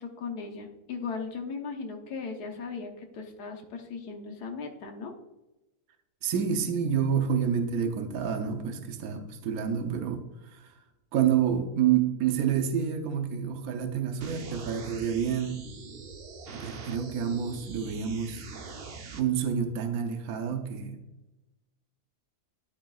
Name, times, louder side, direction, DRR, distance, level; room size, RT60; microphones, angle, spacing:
voice 1, 0.0-5.1, left 5 dB, 85° left, 2 dB, 1.5 m, -37 dB
voice 2, 6.2-10.7 11.1-15.6 16.5-18.4 19.1-21.0, right 8 dB, 70° right, 6 dB, 1.2 m, -28 dB
sound 1, 14.2-19.2, right 4 dB, 50° right, 0.8 m, -43 dB
11.5 x 5.1 x 2.4 m, 1.0 s
omnidirectional pair, 1.7 m